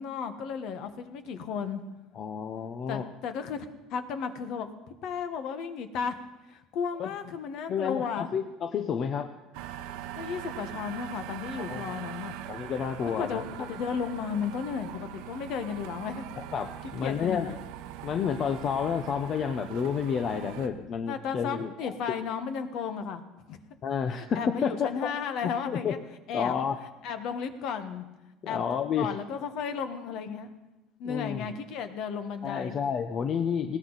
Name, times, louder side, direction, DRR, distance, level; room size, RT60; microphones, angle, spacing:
voice 1, 0.0-1.8 2.9-4.7 5.0-6.1 6.5-8.3 10.2-12.4 13.2-16.3 17.0-17.5 21.1-23.2 23.5-23.6 24.1-26.0 26.3-26.6 27.0-28.0 28.5-28.6 29.0-30.6 31.0-32.8, left 6 dB, 55° left, 9 dB, 1.4 m, -34 dB
voice 2, 2.1-3.1 7.0-7.1 7.7-9.3 11.7-11.8 12.5-13.4 16.5-17.5 18.0-21.9 23.8-24.9 25.4-25.9 26.3-26.8 28.4-29.1 31.0-31.5 32.4-33.8, left 7 dB, 35° left, 7 dB, 0.7 m, -30 dB
sound 1, 9.5-20.7, right 11 dB, 80° right, 1.0 m, -41 dB
19.5 x 17.5 x 4.1 m, 1.0 s
cardioid pair, 160°, 0 cm